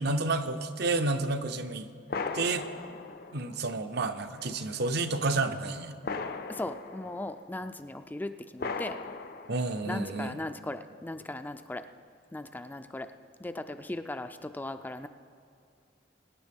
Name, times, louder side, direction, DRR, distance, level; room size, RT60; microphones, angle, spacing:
voice 1, 0.0-1.9 2.3-2.6 3.3-5.9 9.5-10.3, right 3 dB, 60° right, 8 dB, 0.7 m, -30 dB
sound 1, 1.0-1.1 2.1-3.9 4.4-4.5 6.0-7.6 8.6-10.1, left 4 dB, 55° left, 0.6 m, -38 dB
voice 2, 6.5-9.0 9.8-11.8 12.3-13.1 13.4-15.1, left 2 dB, 10° left, 9 dB, 0.3 m, -38 dB
22.5 x 9.7 x 3.5 m, 2.4 s
head